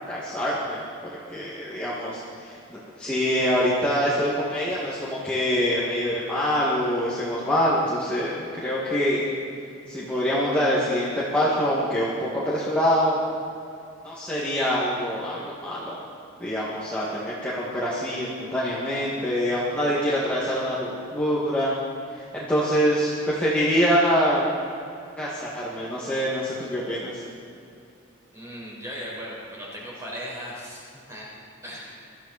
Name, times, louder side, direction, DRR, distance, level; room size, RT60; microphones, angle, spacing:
voice 1, 0.1-9.3 9.9-13.2 14.0-16.0 16.4-21.7 22.1-24.4 25.2-27.2, equal, 5° left, -9 dB, 2.1 m, -25 dB
voice 2, 28.3-31.3 31.6-32.2, equal, 15° right, -5 dB, 4.7 m, -37 dB
23.0 x 14.0 x 4.3 m, 2.6 s
head